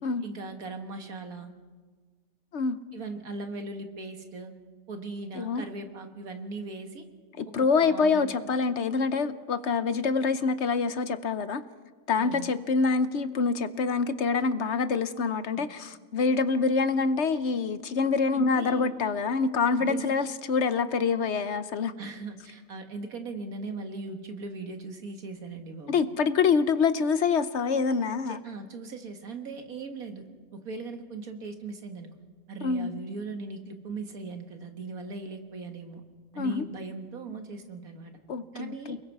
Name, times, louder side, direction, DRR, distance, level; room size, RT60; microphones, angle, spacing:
voice 1, 0.2-1.5 2.9-4.5 4.9-7.0 7.6-8.3 12.2-12.6 15.6-15.7 18.3-18.9 19.8-20.1 22.0-26.0 28.3-30.2 30.5-32.1 32.5-36.0 36.3-38.2 38.5-39.0, right 3 dB, 85° right, 5 dB, 2.1 m, -39 dB
voice 2, 5.3-5.7 7.4-11.6 12.1-21.9 25.9-28.4 32.6-32.9 36.4-36.6 38.3-39.0, left 5 dB, 60° left, 12 dB, 1.0 m, -26 dB
29.0 x 20.5 x 4.7 m, 1.5 s
omnidirectional pair, 1.5 m